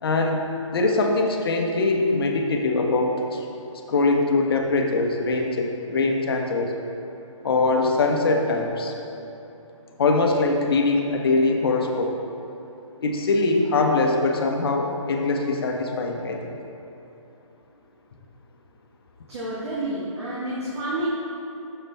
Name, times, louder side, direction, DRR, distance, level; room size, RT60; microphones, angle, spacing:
voice 1, 0.0-3.5 3.9-6.7 7.4-8.9 10.0-12.1 13.0-16.5, left 3 dB, 45° left, 2 dB, 1.0 m, -22 dB
voice 2, 19.3-21.1, right 1 dB, 50° right, -8 dB, 1.8 m, -29 dB
10.5 x 6.7 x 3.4 m, 2.9 s
hypercardioid pair, 155°, 17 cm